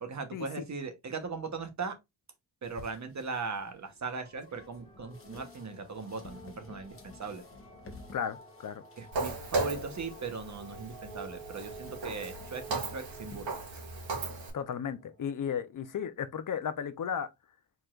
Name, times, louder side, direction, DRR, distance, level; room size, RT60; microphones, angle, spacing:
voice 1, 0.0-2.0 2.6-7.4 9.0-13.5, right 4 dB, 40° right, 1.0 m, -39 dB
sound 1, 2.6-13.4, left 3 dB, 30° left, 1.3 m, -55 dB
sound 2, 4.1-16.0, right 2 dB, 10° left, 1.8 m, -52 dB
voice 2, 8.1-8.8 14.5-17.3, left 8 dB, 45° left, 0.6 m, -34 dB
Walk footsteps, 9.1-14.5, right 3 dB, 85° right, 1.9 m, -36 dB
4.7 x 4.0 x 2.4 m
wide cardioid pair, 150°, 43 cm